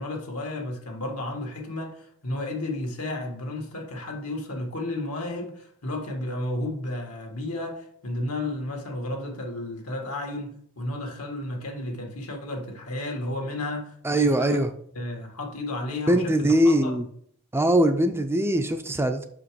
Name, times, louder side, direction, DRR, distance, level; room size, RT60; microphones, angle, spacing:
voice 1, 0.0-14.7 15.0-17.0, left 2 dB, 80° left, 1.7 m, -32 dB
voice 2, 14.0-14.7 16.1-17.1 17.5-19.2, right 1 dB, 10° right, 0.4 m, -21 dB
5.9 x 5.0 x 4.7 m
head